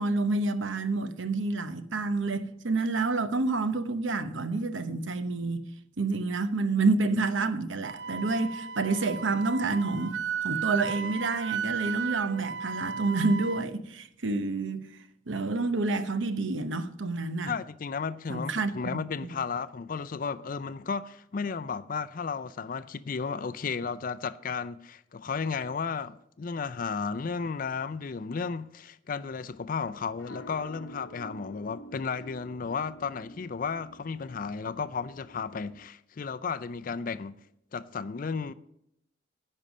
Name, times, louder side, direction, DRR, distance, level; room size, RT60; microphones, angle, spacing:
voice 1, 0.0-5.6 6.0-10.2 10.4-14.9 15.3-17.5 18.3-19.0, right 3 dB, 80° right, 0.9 m, -28 dB
Wind instrument woodwind instrument, 7.8-13.6, right 7 dB, 60° right, 0.4 m, -34 dB
voice 2, 17.5-37.4 37.7-38.5, left 5 dB, 45° left, 0.4 m, -34 dB
sound 1, 29.6-35.9, equal, 75° left, 0.8 m, -49 dB
10.5 x 5.5 x 7.4 m
head